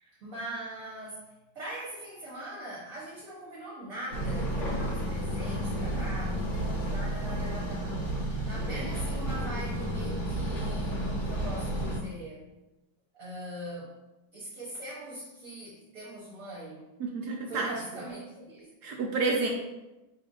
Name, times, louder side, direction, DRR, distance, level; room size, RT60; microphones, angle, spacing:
voice 1, 0.2-12.4 13.1-13.9 14.3-16.9 17.5-18.7, right 1 dB, 50° right, -6 dB, 1.1 m, -41 dB
sound 1, 4.1-12.0, right 1 dB, 30° left, 0.9 m, -31 dB
voice 2, 17.0-17.7 18.8-19.5, right 3 dB, 85° right, 0 dB, 0.8 m, -30 dB
4.9 x 2.6 x 3.6 m, 1.0 s
omnidirectional pair, 2.2 m